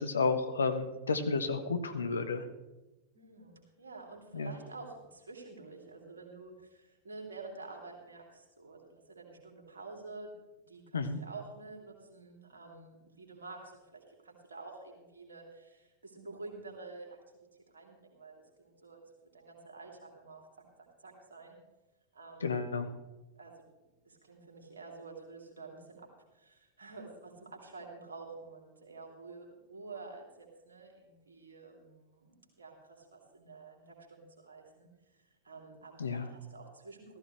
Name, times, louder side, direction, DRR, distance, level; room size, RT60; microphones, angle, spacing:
voice 1, 0.0-2.4 4.3-4.5 10.9-11.2 22.4-22.9 36.0-36.3, left 4 dB, 70° left, 9 dB, 1.2 m, -31 dB
voice 2, 3.1-10.3 10.7-17.2 17.7-19.0 19.3-20.7 21.0-21.6 22.1-22.7 23.3-23.5 24.0-26.1 26.3-37.2, right 3 dB, 70° right, 1 dB, 3.3 m, -49 dB
15.0 x 15.0 x 3.3 m, 1.0 s
figure-of-eight pair, 90°, 0 cm